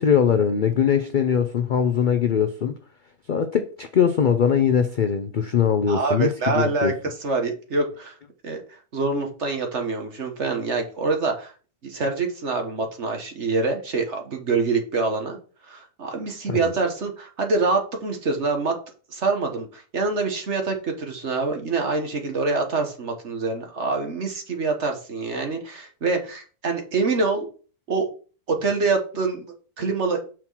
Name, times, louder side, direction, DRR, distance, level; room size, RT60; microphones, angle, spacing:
voice 1, 0.0-2.8 3.3-6.9 16.5-16.7, left 7 dB, 80° left, 0.4 m, -21 dB
voice 2, 5.9-6.9 7.2-8.2 8.4-11.5 11.8-15.4 15.6-18.7 19.1-27.5 27.9-28.1 28.5-29.5 29.8-30.2, right 3 dB, 50° right, 1.6 m, -25 dB
6.2 x 4.4 x 5.6 m
omnidirectional pair, 1.6 m